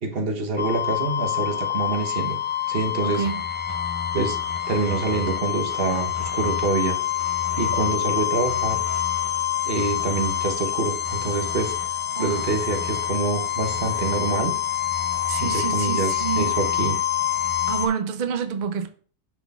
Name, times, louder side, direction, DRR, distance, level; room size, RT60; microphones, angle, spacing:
voice 1, 0.0-2.4 2.7-3.2 4.1-4.4 4.7-6.9 7.6-8.8 9.7-11.7 12.2-14.5 15.4-17.0, right 4 dB, 45° right, 1.1 m, -26 dB
sound 1, 0.6-17.9, left 10 dB, 55° left, 0.3 m, -26 dB
voice 2, 3.0-3.4 12.2-12.5 15.3-16.5 17.7-18.9, right 7 dB, 65° right, 0.4 m, -28 dB
11.0 x 4.0 x 2.3 m
omnidirectional pair, 1.5 m